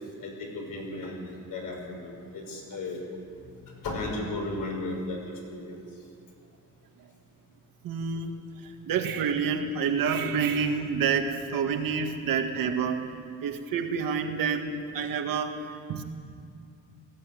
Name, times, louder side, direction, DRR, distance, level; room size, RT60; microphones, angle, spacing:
voice 1, 0.2-3.0 3.4-5.2 5.5-5.8, left 2 dB, 75° left, 0 dB, 5.9 m, -35 dB
voice 2, 7.8-8.3 8.6-13.1 13.4-15.6 15.9-16.0, right 6 dB, 85° right, 4 dB, 2.0 m, -28 dB
18.5 x 15.5 x 9.4 m, 2.4 s
cardioid pair, 155°, 33 cm